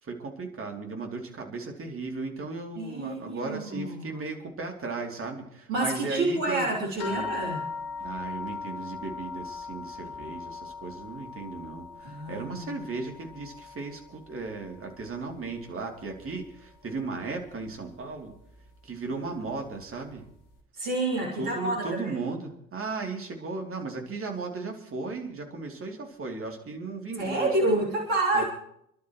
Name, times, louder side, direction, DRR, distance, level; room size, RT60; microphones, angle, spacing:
voice 1, 0.0-6.7 7.1-7.3 8.0-18.3 18.8-20.3 21.4-27.8 28.3-28.4, right 3 dB, 30° right, 2 dB, 3.2 m, -36 dB
voice 2, 2.8-4.2 5.7-7.6 12.0-12.7 20.8-22.2 27.2-28.4, right 2 dB, 65° right, -3 dB, 3.6 m, -28 dB
sound 1, 7.0-15.8 16.1-17.0 17.8-17.9 18.3-18.4, left 5 dB, 65° left, 2.5 m, -40 dB
29.0 x 12.0 x 3.2 m, 0.72 s
figure-of-eight pair, 60°, 41 cm